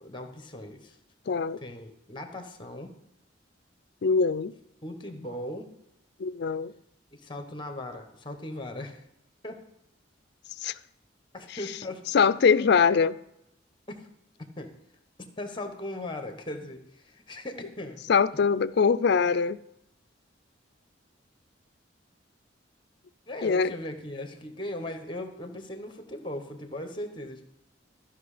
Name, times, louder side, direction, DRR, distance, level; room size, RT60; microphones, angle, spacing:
voice 1, 0.0-1.0 1.6-2.9 4.8-5.7 7.1-9.0 9.4-9.6 11.3-12.0 13.9-14.1 14.6-14.7 15.4-18.0 23.3-27.4, left 1 dB, 25° left, 6 dB, 1.2 m, -38 dB
voice 2, 1.3-1.6 4.0-4.5 6.2-6.7 10.6-10.7 12.1-13.2 18.1-19.6 23.4-23.7, left 5 dB, 60° left, 16 dB, 0.4 m, -22 dB
13.5 x 5.5 x 5.0 m, 0.82 s
head